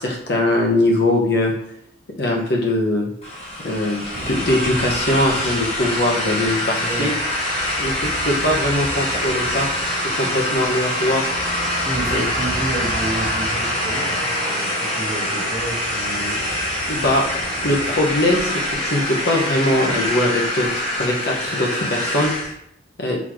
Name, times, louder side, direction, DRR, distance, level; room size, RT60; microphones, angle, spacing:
voice 1, 0.0-1.5 2.2-3.1 3.6-7.1 7.8-7.9 8.2-9.7 10.1-11.3 12.1-12.3 16.9-17.2 17.6-22.3 23.0-23.2, left 1 dB, 55° left, -1 dB, 1.0 m, -21 dB
sound 1, 3.2-22.5, left 1 dB, 35° left, 1.0 m, -24 dB
sound 2, 4.1-18.0, right 2 dB, 55° right, 0.4 m, -37 dB
voice 2, 6.8-7.1 11.9-16.4, right 1 dB, 10° right, -6 dB, 1.3 m, -30 dB
4.1 x 3.7 x 3.1 m, 0.72 s
head